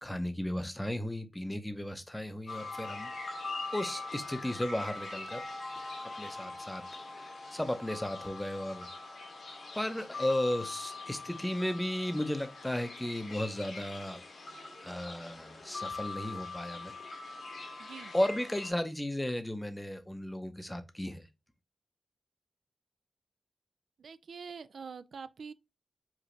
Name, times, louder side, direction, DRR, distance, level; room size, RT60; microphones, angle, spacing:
voice 1, 0.0-3.1 3.4-3.5 3.7-5.4 6.2-6.8 7.2-8.9 9.7-14.2 14.8-16.9 18.1-21.2, left 1 dB, 10° left, 0.6 m, -35 dB
sound 1, 2.5-18.7, left 3 dB, 85° left, 1.5 m, -42 dB
voice 2, 17.8-18.1 24.0-25.5, right 5 dB, 80° right, 0.3 m, -45 dB
4.9 x 2.7 x 3.1 m
wide cardioid pair, 135°, 0 cm